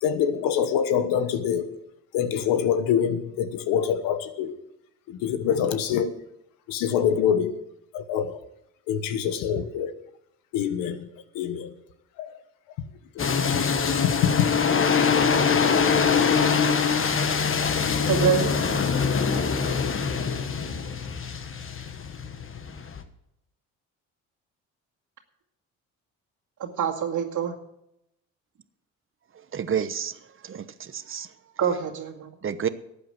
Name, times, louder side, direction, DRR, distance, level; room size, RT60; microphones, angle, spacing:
voice 1, 0.0-1.7 2.1-4.5 5.1-6.1 6.7-7.5 7.9-8.4 8.9-9.9 10.5-11.1 11.3-11.7 12.2-12.4 13.1-15.1 15.8-16.0, left 8 dB, 90° left, 11 dB, 1.2 m, -25 dB
sound 1, 13.2-23.0, left 6 dB, 40° left, 1.4 m, -23 dB
voice 2, 18.1-18.5 26.6-27.5 31.6-32.3, right 7 dB, 65° right, 2 dB, 2.2 m, -25 dB
voice 3, 29.5-30.1 30.4-31.3 32.4-32.7, right 8 dB, 40° right, 13 dB, 1.0 m, -29 dB
12.5 x 8.6 x 7.6 m, 0.81 s
supercardioid pair, 75°, 33 cm